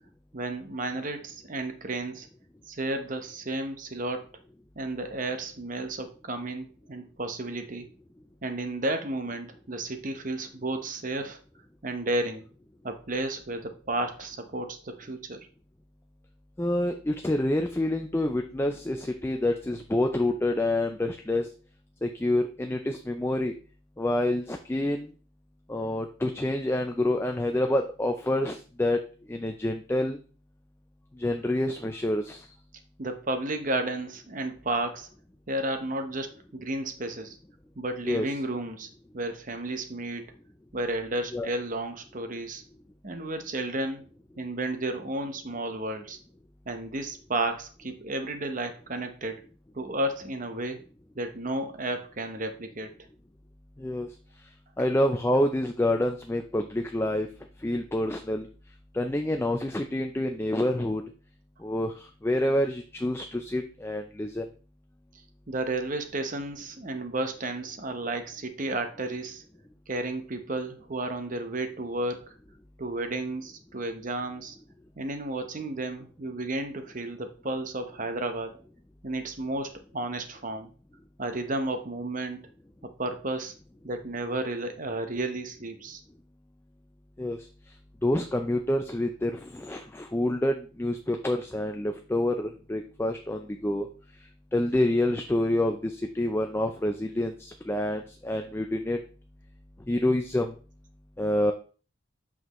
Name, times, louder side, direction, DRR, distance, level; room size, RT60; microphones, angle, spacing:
voice 1, 0.3-2.3 2.7-4.3 4.8-7.9 8.4-11.4 11.8-12.5 12.8-15.5 33.0-35.1 35.5-37.4 37.8-38.9 39.1-40.3 40.7-42.6 43.0-44.1 44.4-46.2 46.7-49.4 49.7-50.8 51.2-52.9 65.5-69.4 69.9-72.3 72.8-74.6 75.0-78.5 79.0-80.7 81.2-82.4 82.8-83.5 83.8-86.0, right 2 dB, 40° right, 7 dB, 0.9 m, -32 dB
voice 2, 16.6-21.5 22.0-23.5 24.0-25.1 25.7-29.0 29.3-30.2 31.2-32.4 38.1-38.3 41.3-41.5 53.8-54.1 54.8-57.3 57.6-58.5 58.9-61.0 61.6-64.4 87.2-87.4 88.0-93.9 94.5-99.0 99.9-100.5 101.2-101.5, left 1 dB, 10° left, 4 dB, 0.4 m, -27 dB
7.7 x 6.1 x 3.0 m, 0.38 s
head